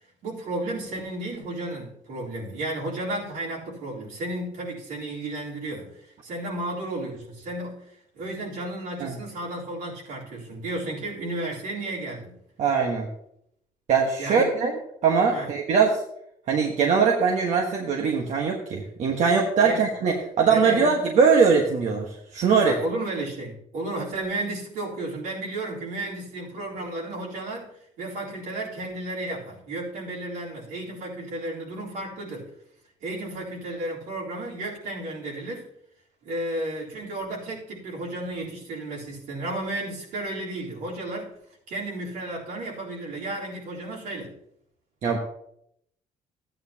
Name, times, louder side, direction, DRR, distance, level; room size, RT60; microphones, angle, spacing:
voice 1, 0.2-7.8 8.1-12.4 14.2-14.5 15.3-15.5 19.6-19.8 20.5-21.0 22.6-27.7 28.0-32.5 33.0-35.7 36.2-41.3 41.7-44.4, right 1 dB, 80° right, -4 dB, 3.8 m, -33 dB
voice 2, 12.6-13.1 13.9-16.0 16.5-22.8 45.0-45.2, right 5 dB, 60° right, 0 dB, 1.4 m, -21 dB
13.5 x 9.0 x 2.9 m, 0.74 s
cardioid pair, 110°, 14 cm